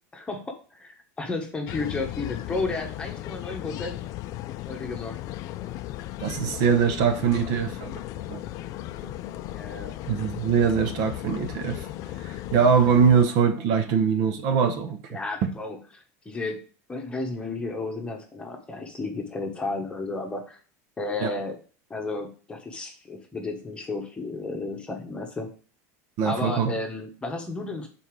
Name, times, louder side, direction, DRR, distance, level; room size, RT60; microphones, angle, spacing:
voice 1, 0.1-4.0 4.7-5.2 9.5-10.0 15.1-16.6 16.9-20.6 21.0-21.6 21.9-25.5 26.2-27.9, left 3 dB, 10° left, 1.2 m, -33 dB
sound 1, 1.7-13.3, left 14 dB, 45° left, 0.4 m, -36 dB
voice 2, 6.2-8.0 8.3-8.4 9.0-9.1 10.0-11.9 12.2-15.5 21.2-21.3 26.2-26.8, right 6 dB, 50° right, 0.9 m, -23 dB
5.6 x 4.3 x 4.7 m
supercardioid pair, 150°, 9 cm